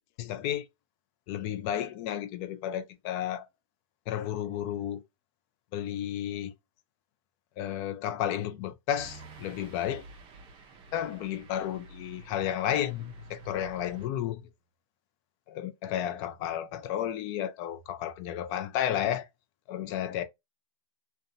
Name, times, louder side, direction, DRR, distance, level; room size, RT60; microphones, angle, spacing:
voice 1, 0.2-0.7 1.3-3.5 4.1-5.0 5.7-6.5 7.6-10.0 10.9-14.4 15.5-19.2 19.7-20.2, left 11 dB, 40° left, 0.5 m, -32 dB
sound 1, 9.0-14.1, right 2 dB, 30° right, 0.6 m, -49 dB
2.6 x 2.2 x 2.5 m
hypercardioid pair, 125°, 16 cm